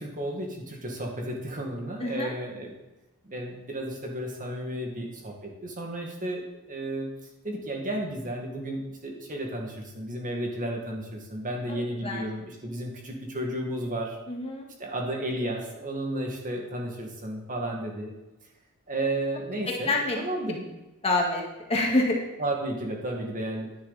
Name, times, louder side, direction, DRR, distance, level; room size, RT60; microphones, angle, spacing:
voice 1, 0.0-2.7 3.2-7.1 7.4-14.2 14.8-18.1 18.9-20.7 22.4-23.8, right 1 dB, 35° right, 0 dB, 2.0 m, -33 dB
voice 2, 2.0-2.3 11.7-11.8 12.0-12.2 14.3-14.7 19.8-20.2 21.0-21.4 21.7-22.2, left 2 dB, 25° left, 0 dB, 1.8 m, -26 dB
10.5 x 10.0 x 4.1 m, 1.0 s
head